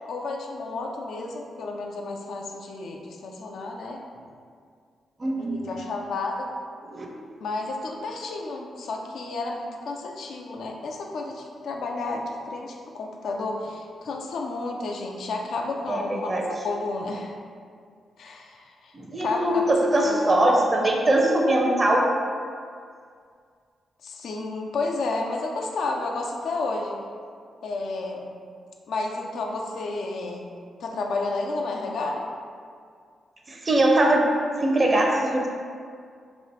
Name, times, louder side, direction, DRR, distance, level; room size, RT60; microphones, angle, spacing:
voice 1, 0.1-4.0 5.4-6.5 7.4-16.3 16.6-17.3 18.2-18.9 19.2-19.8 20.1-20.5 24.0-27.0 27.6-28.3 28.9-30.5 30.8-32.3, left 3 dB, 75° left, 1 dB, 0.3 m, -31 dB
voice 2, 5.2-5.6 6.9-7.1 15.9-16.0 16.3-16.4 18.9-22.1 33.5-34.3 34.6-35.5, right 1 dB, 35° right, -1 dB, 0.6 m, -21 dB
2.9 x 2.4 x 3.0 m, 2.1 s
supercardioid pair, 60°, 0 cm